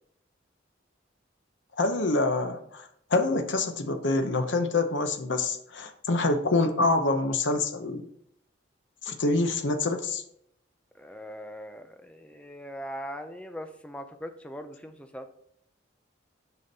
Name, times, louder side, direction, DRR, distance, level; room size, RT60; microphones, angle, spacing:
voice 1, 1.8-8.1 9.0-10.2, left 2 dB, 70° left, 6 dB, 0.8 m, -26 dB
voice 2, 11.0-15.3, equal, 5° left, 7 dB, 0.5 m, -40 dB
6.9 x 5.1 x 4.1 m, 0.70 s
head